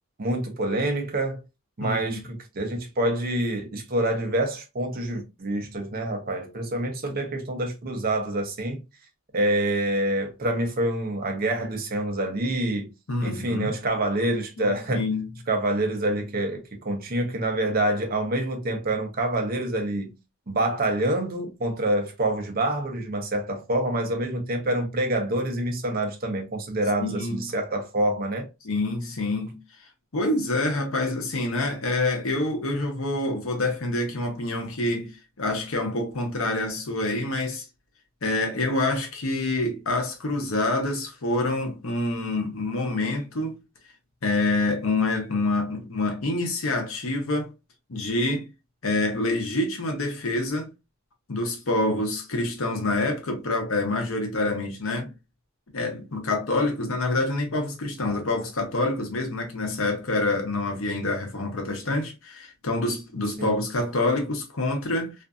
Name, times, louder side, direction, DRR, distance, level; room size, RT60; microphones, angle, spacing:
voice 1, 0.2-1.4 1.8-8.8 9.3-12.9 13.2-15.0 15.5-20.1 20.5-28.5 63.4-63.5, right 1 dB, 45° right, 0.6 m, -26 dB
voice 2, 1.8-2.2 13.1-13.7 14.6-15.3 27.0-27.5 28.6-29.6 30.1-35.1 35.4-37.6 38.2-43.6 44.2-47.5 47.9-48.5 48.8-50.7 51.3-55.1 55.7-65.1, left 2 dB, 70° left, 0.8 m, -26 dB
2.5 x 2.5 x 2.3 m
head